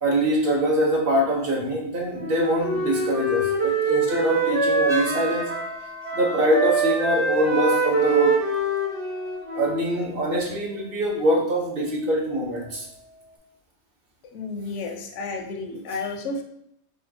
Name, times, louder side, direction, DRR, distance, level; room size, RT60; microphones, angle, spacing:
voice 1, 0.0-5.5 6.1-8.4 9.5-12.9, equal, 55° right, -2 dB, 1.1 m, -24 dB
Wind instrument woodwind instrument, 2.2-5.8 6.0-10.0, right 3 dB, 75° right, 1.5 m, -24 dB
sound 1, 4.9-13.4, equal, 5° right, 0.3 m, -42 dB
voice 2, 14.3-16.4, left 3 dB, 85° left, 4 dB, 0.9 m, -32 dB
4.8 x 2.4 x 2.7 m, 0.74 s
omnidirectional pair, 1.2 m